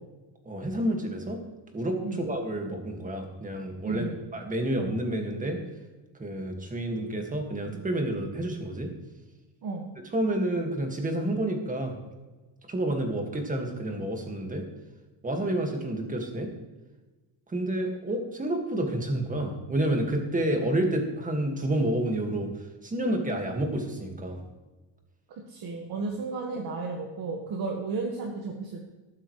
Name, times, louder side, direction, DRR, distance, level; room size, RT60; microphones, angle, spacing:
voice 1, 0.4-1.4 1.7-5.6 6.1-8.9 10.1-12.0 12.7-14.6 15.2-16.5 17.5-24.4, right 1 dB, 15° right, 3 dB, 2.0 m, -29 dB
voice 2, 3.8-4.2 9.6-9.9 25.5-28.8, right 3 dB, 50° right, 0 dB, 1.8 m, -33 dB
14.5 x 12.0 x 3.3 m, 1.2 s
cardioid pair, 150°, 47 cm